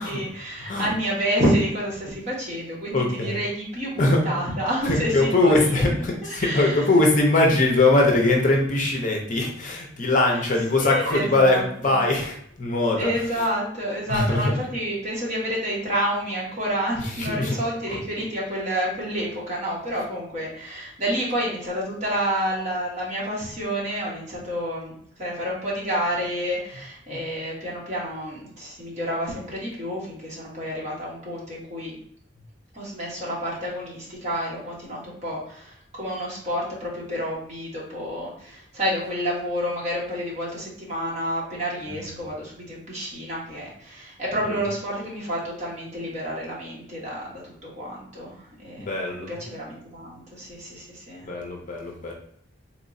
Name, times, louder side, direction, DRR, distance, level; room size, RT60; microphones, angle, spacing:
voice 1, 0.0-6.9 10.3-10.4 10.7-12.0 13.0-31.9 32.7-51.3, equal, 35° right, -5 dB, 1.4 m, -29 dB
voice 2, 2.9-3.4 4.0-4.2 4.8-13.1 14.1-14.5 17.2-17.5 48.8-49.3 51.3-52.1, left 2 dB, 40° left, 0 dB, 0.6 m, -21 dB
3.8 x 3.0 x 2.6 m, 0.64 s
head